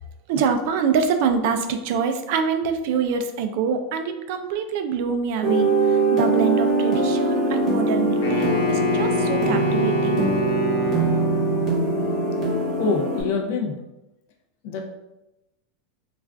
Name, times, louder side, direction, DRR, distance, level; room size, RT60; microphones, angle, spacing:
voice 1, 0.3-10.3, right 6 dB, 55° right, 7 dB, 0.3 m, -25 dB
sound 1, 5.4-13.2, right 2 dB, 25° right, 1.0 m, -22 dB
Wind instrument woodwind instrument, 8.2-11.7, left 1 dB, 75° left, 0.7 m, -27 dB
voice 2, 12.8-13.8 14.6-14.8, left 4 dB, 55° left, 2 dB, 0.4 m, -25 dB
2.4 x 2.3 x 3.3 m, 0.94 s
supercardioid pair, 165°, 0 cm